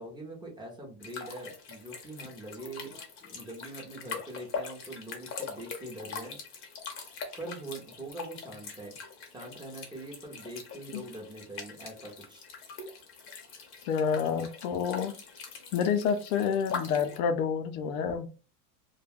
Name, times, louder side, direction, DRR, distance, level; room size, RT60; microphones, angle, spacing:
voice 1, 0.0-6.4 7.4-9.0 9.2-12.5, right 2 dB, 10° right, -1 dB, 0.6 m, -43 dB
sound 1, 1.0-17.2, left 5 dB, 30° left, 0.6 m, -42 dB
voice 2, 13.9-15.1 15.7-18.3, left 7 dB, 70° left, 8 dB, 0.6 m, -28 dB
2.3 x 2.1 x 3.4 m, 0.34 s
supercardioid pair, 140°, 44 cm